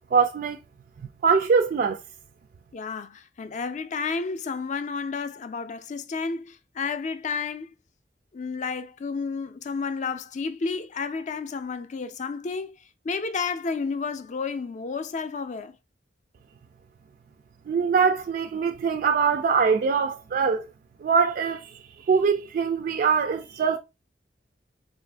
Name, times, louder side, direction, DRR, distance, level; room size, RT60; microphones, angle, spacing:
voice 1, 0.1-0.6 1.2-2.0 17.7-20.6 21.0-21.8 22.1-23.8, right 5 dB, 55° right, 0.3 m, -23 dB
voice 2, 2.7-7.7 8.3-15.8, left 5 dB, 45° left, 0.4 m, -31 dB
3.9 x 2.5 x 3.3 m
head